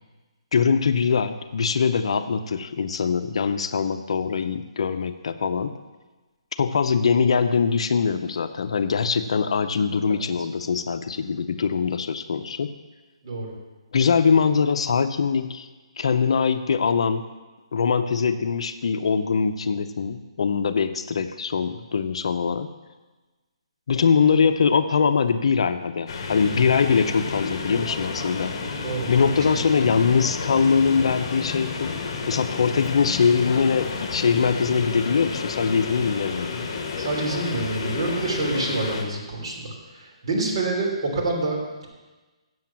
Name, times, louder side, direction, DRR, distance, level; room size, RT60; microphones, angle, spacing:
voice 1, 0.5-5.7 6.6-12.7 13.9-15.7 16.0-17.2 17.7-22.7 23.9-28.5 29.1-36.7, left 5 dB, 65° left, 9 dB, 0.7 m, -22 dB
voice 2, 13.2-13.5 28.8-29.6 37.0-41.9, right 2 dB, 50° right, -3 dB, 3.5 m, -27 dB
sound 1, 26.1-39.0, left 4 dB, 40° left, 1.6 m, -31 dB
7.7 x 7.6 x 7.4 m, 1.2 s
hypercardioid pair, 160°, 3 cm